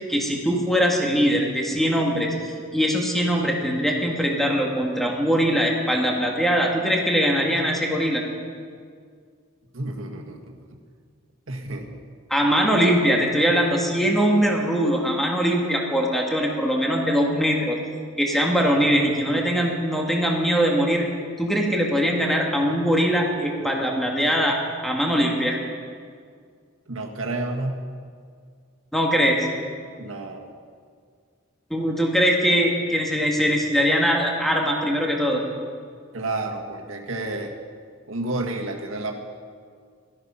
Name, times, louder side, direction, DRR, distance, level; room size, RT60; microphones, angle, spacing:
voice 1, 0.1-2.3 2.7-8.2 12.3-17.8 18.2-21.1 21.4-24.6 24.8-25.6 28.9-29.5 31.7-35.4, equal, ahead, -1 dB, 1.8 m, -21 dB
voice 2, 9.7-10.6 11.5-12.0 12.6-12.7 26.9-27.8 30.0-30.5 36.1-37.5 38.1-39.2, right 2 dB, 80° right, 1 dB, 1.8 m, -30 dB
17.0 x 13.5 x 5.7 m, 2.1 s
head